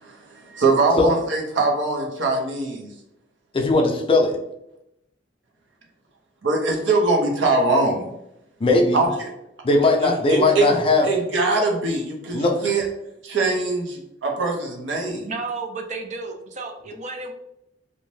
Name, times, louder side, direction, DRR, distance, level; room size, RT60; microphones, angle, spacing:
voice 1, 0.0-2.9 6.4-8.1 8.9-9.1 10.0-10.8 11.0-12.8 13.2-15.3, right 3 dB, 80° right, 1 dB, 0.7 m, -22 dB
voice 2, 3.5-4.4 8.6-9.0 9.6-11.1 12.3-12.5, left 2 dB, 30° left, 2 dB, 0.4 m, -18 dB
voice 3, 15.2-17.3, right 3 dB, 40° right, 5 dB, 0.4 m, -32 dB
2.6 x 2.1 x 3.1 m, 0.83 s
head